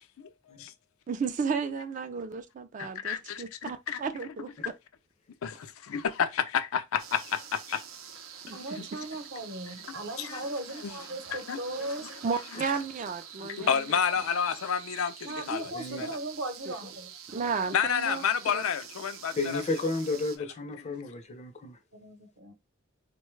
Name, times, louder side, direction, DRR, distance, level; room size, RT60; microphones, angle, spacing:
voice 1, 1.1-4.7 8.4-8.8 12.2-14.0 16.7-16.8 17.3-18.2 18.5-18.6, right 5 dB, 40° right, 0.3 m, -33 dB
voice 2, 2.8-4.0 5.4-7.8 8.8-8.9 10.2-10.4 10.8-11.0 11.5-12.0 13.4-15.7 16.0-16.2 17.7-19.6 20.9-21.0, left 7 dB, 85° left, 0.4 m, -30 dB
sound 1, 7.0-20.4, right 8 dB, 85° right, 0.6 m, -46 dB
voice 3, 8.5-12.2 15.2-17.2 21.9-22.5, right 2 dB, 55° right, 0.8 m, -38 dB
voice 4, 15.7-16.1 19.4-21.8, left 2 dB, 35° left, 0.5 m, -32 dB
3.8 x 2.2 x 3.1 m
head